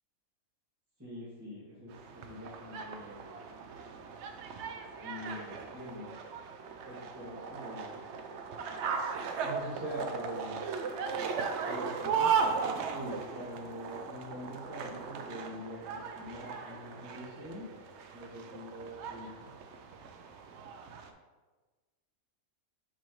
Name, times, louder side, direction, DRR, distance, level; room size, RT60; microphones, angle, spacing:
voice 1, 1.0-3.2 5.0-6.2 6.8-8.0 9.4-10.6 11.7-12.3 12.9-17.8 18.1-19.6, equal, 10° right, -12 dB, 1.8 m, -44 dB
sound 1, 1.9-21.1, right 6 dB, 65° right, 0.7 m, -37 dB
5.9 x 5.3 x 3.0 m, 1.3 s
omnidirectional pair, 1.5 m